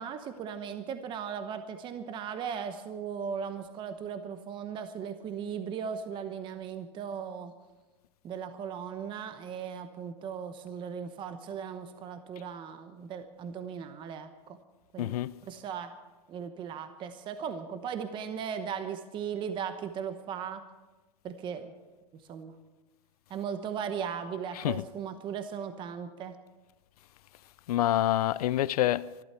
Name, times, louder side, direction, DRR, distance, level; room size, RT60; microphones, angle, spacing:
voice 1, 0.0-7.5 8.2-14.3 14.9-15.2 15.5-15.9 16.3-20.6 21.2-21.7 22.3-22.5 23.3-26.4, right 7 dB, 25° right, 1.0 m, -37 dB
voice 2, 15.0-15.4 24.5-24.8 27.7-29.1, left 13 dB, 75° left, 0.6 m, -27 dB
25.0 x 12.0 x 4.5 m
supercardioid pair, 140°, 20 cm